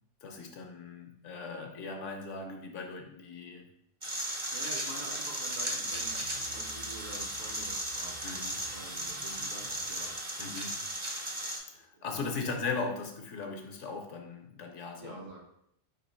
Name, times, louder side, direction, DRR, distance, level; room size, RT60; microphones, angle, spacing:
voice 1, 0.2-3.7 8.2-8.6 10.4-10.8 11.7-15.4, left 4 dB, 70° left, 3 dB, 1.0 m, -38 dB
sound 1, 4.0-11.6, right 1 dB, 30° right, 0.7 m, -36 dB
voice 2, 4.5-10.2 11.9-12.6 15.0-15.4, right 2 dB, 55° right, -1 dB, 1.2 m, -47 dB
sound 2, 5.9-10.7, left 3 dB, 50° left, 0.7 m, -53 dB
4.3 x 2.8 x 4.2 m, 0.74 s
omnidirectional pair, 1.4 m